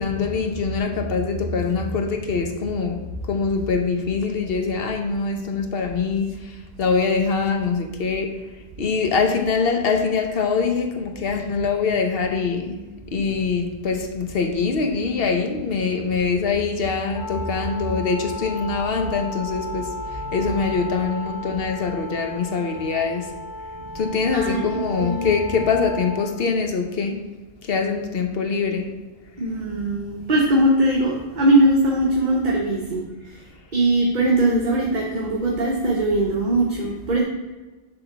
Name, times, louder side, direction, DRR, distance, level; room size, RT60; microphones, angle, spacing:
voice 1, 0.0-3.0 3.3-8.3 8.8-12.8 13.1-23.3 23.9-27.2 27.7-28.9, left 5 dB, 60° left, 4 dB, 1.1 m, -24 dB
Wind instrument woodwind instrument, 17.1-26.3, left 2 dB, 90° left, 1.4 m, -35 dB
voice 2, 24.3-25.3 29.4-33.4 33.7-37.2, right 1 dB, 45° right, -2 dB, 1.0 m, -21 dB
7.0 x 3.8 x 5.8 m, 1.2 s
omnidirectional pair, 1.2 m